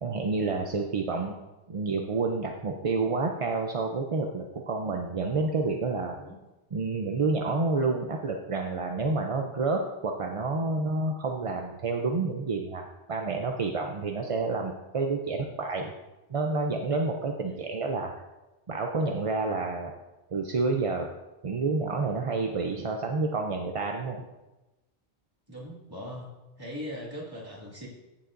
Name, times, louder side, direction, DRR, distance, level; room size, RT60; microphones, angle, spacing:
voice 1, 0.0-6.2 6.7-15.9 16.3-18.1 18.7-19.9 20.3-21.1 21.4-24.3, right 3 dB, 40° right, 2 dB, 0.5 m, -29 dB
voice 2, 25.5-26.3 26.6-27.9, equal, 20° right, -4 dB, 2.3 m, -40 dB
14.5 x 7.0 x 2.6 m, 1.0 s
omnidirectional pair, 1.1 m